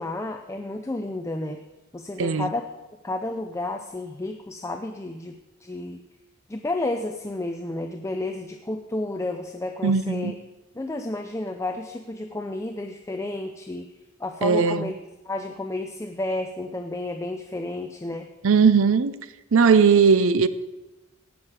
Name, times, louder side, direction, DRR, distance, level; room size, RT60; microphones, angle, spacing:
voice 1, 0.0-1.6 1.9-2.7 3.0-5.4 5.6-6.0 6.5-10.3 10.7-13.9 14.2-14.9 15.2-18.3, left 2 dB, 15° left, 0.5 m, -31 dB
voice 2, 9.8-10.3 14.4-14.9 18.4-19.1 19.5-20.5, right 5 dB, 70° right, 0.6 m, -18 dB
17.5 x 6.4 x 4.8 m
head